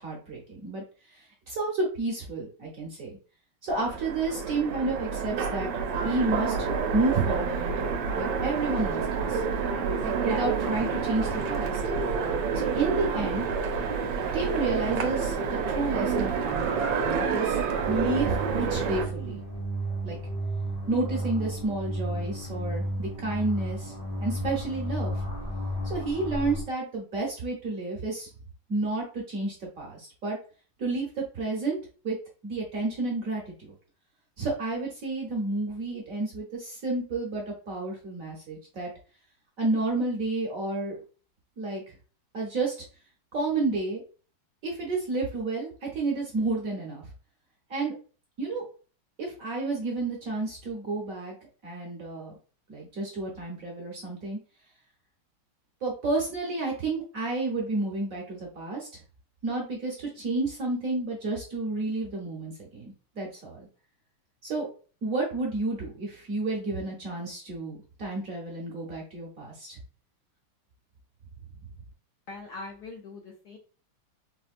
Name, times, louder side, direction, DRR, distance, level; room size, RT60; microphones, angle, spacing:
voice 1, 0.0-3.2 3.6-9.4 9.8-11.8 12.5-13.5 14.3-17.6 17.9-19.4 20.0-20.2 20.9-23.9 24.2-25.2 25.8-28.3 28.7-30.4 30.8-31.8 32.0-32.2 32.4-33.7 34.4-38.9 39.6-41.0 41.6-42.0 42.3-42.8 43.3-44.0 44.6-47.1 47.7-47.9 48.4-48.6 49.2-51.3 51.6-52.3 52.7-54.4 55.8-59.0 59.4-63.7 64.4-64.7 65.0-69.8, right 3 dB, 60° right, -2 dB, 1.0 m, -31 dB
Train, 3.7-19.1, right 5 dB, 75° right, 1.2 m, -28 dB
sound 1, 17.8-26.6, right 1 dB, 40° left, 0.5 m, -33 dB
voice 2, 72.3-73.6, left 3 dB, 70° left, 1 dB, 1.0 m, -42 dB
4.2 x 2.1 x 2.4 m, 0.38 s
omnidirectional pair, 2.1 m